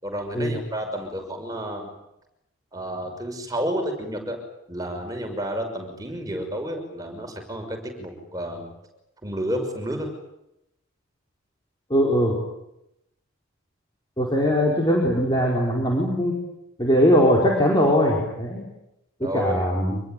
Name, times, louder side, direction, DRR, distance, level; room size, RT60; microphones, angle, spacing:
voice 1, 0.0-1.9 2.7-4.4 4.7-8.7 9.2-10.1 19.2-20.0, equal, 15° right, 3 dB, 6.2 m, -31 dB
voice 2, 11.9-12.3 14.2-16.3 16.8-18.7 19.2-20.0, equal, 20° left, -2 dB, 5.1 m, -20 dB
26.5 x 22.0 x 9.4 m, 0.86 s
head